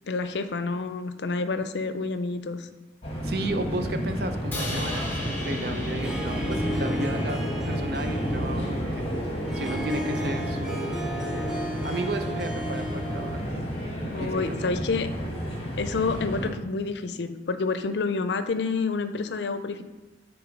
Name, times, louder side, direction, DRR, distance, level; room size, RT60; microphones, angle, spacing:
voice 1, 0.1-2.7 14.1-15.1 15.8-19.8, left 4 dB, 80° left, 10 dB, 0.5 m, -28 dB
sound 1, 3.0-16.5, equal, 35° left, 1.3 m, -31 dB
voice 2, 3.2-9.0 9.5-11.1 11.8-13.7 14.2-14.6, right 2 dB, 60° right, 7 dB, 0.7 m, -33 dB
Crash cymbal, 4.5-8.7, left 1 dB, 10° left, 1.1 m, -38 dB
Harp, 5.8-13.7, equal, 5° right, 0.7 m, -35 dB
7.9 x 3.5 x 5.2 m, 1.2 s
head